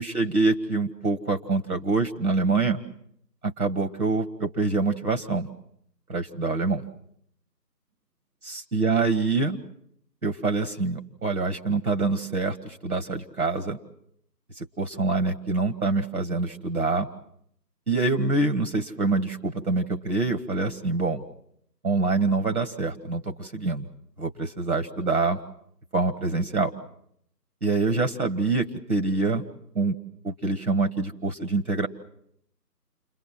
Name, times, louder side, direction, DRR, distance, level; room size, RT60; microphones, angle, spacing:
voice 1, 0.0-2.8 3.4-5.5 6.1-6.8 8.4-9.6 10.2-13.8 14.6-17.1 17.9-21.2 21.8-23.9 24.2-25.4 25.9-26.7 27.6-29.4 29.8-30.0 30.2-31.9, right 3 dB, 60° right, 7 dB, 1.7 m, -25 dB
29.5 x 22.5 x 7.4 m, 0.72 s
figure-of-eight pair, 160°, 49 cm